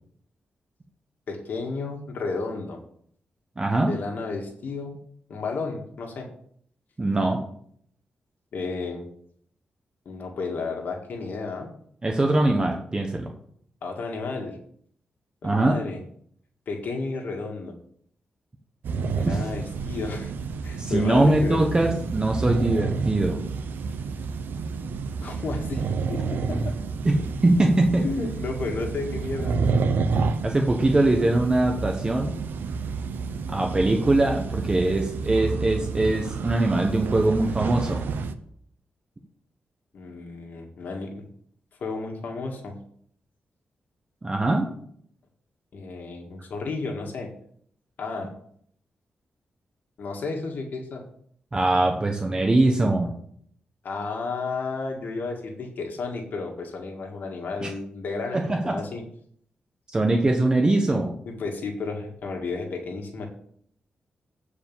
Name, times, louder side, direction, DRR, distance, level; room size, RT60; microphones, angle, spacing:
voice 1, 1.3-2.8 3.9-4.9 5.3-6.3 8.5-9.1 10.1-11.7 13.8-14.6 15.4-16.0 16.7-17.7 19.2-20.3 20.6-21.6 25.2-25.8 26.1-26.8 28.0-29.5 39.9-41.2 41.8-42.7 45.7-47.3 48.0-48.3 50.0-51.0 53.8-59.0 61.3-63.3, left 3 dB, 65° left, 2 dB, 1.9 m, -32 dB
voice 2, 3.6-3.9 7.0-7.4 12.0-13.3 15.4-15.8 19.2-19.4 20.8-23.4 27.0-28.0 30.4-32.4 33.5-38.0 44.2-44.7 51.5-53.1 57.6-57.7 58.3-58.8 59.9-61.2, right 2 dB, 25° right, 2 dB, 1.2 m, -22 dB
sound 1, 18.8-38.3, right 4 dB, 80° right, 0.7 m, -29 dB
8.9 x 4.9 x 7.4 m, 0.64 s
cardioid pair, 105°, 3 cm